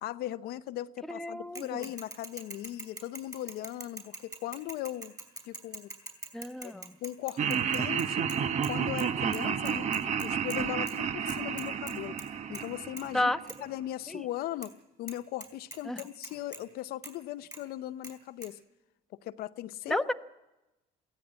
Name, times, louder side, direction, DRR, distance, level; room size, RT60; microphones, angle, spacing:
voice 1, 0.0-5.1 5.4-5.9 6.6-6.7 7.0-8.3 8.7-9.9 10.2-12.2 12.5-13.3 13.6-18.6 19.2-20.1, left 14 dB, 70° left, 0.7 m, -38 dB
voice 2, 1.1-1.9 6.3-6.9 13.1-13.4 14.1-14.2 15.9-16.0 19.9-20.1, left 1 dB, 5° left, 1.0 m, -31 dB
Bicycle / Mechanisms, 1.6-8.7 9.0-9.1 9.3-10.6 10.9-11.0 11.3-12.3 12.5-12.7 13.0-13.1 13.5-13.6 14.6-14.7 15.1-15.2 15.4-16.6 17.0-17.1 17.5-17.6 18.0-18.1 18.4-18.5, right 2 dB, 20° right, 4.3 m, -43 dB
Laughter, 7.4-13.6, right 7 dB, 45° right, 1.0 m, -31 dB
22.5 x 16.5 x 8.8 m
cardioid pair, 110°, 17 cm